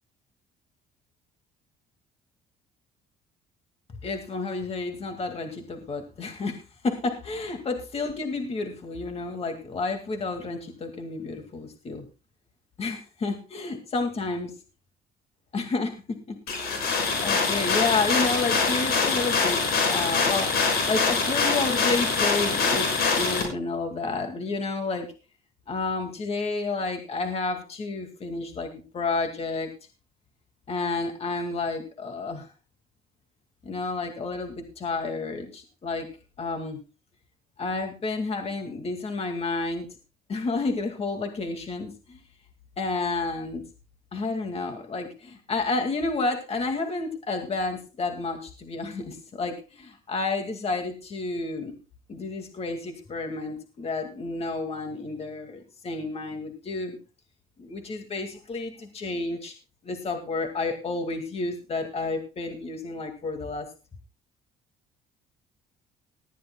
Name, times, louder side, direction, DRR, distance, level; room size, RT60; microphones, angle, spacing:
voice 1, 4.0-12.1 12.8-14.5 15.5-16.9 17.2-19.6 19.9-25.1 25.7-29.7 30.7-32.5 33.6-36.1 36.4-36.8 37.6-39.9 40.3-42.2 42.8-43.6 44.1-51.8 52.1-57.0 57.6-59.5 59.8-63.7, left 3 dB, 35° left, 5 dB, 2.1 m, -30 dB
sound 1, 16.5-23.4, left 4 dB, 70° left, 6.2 m, -24 dB
19.0 x 13.5 x 2.2 m, 0.33 s
cardioid pair, 110°, 17 cm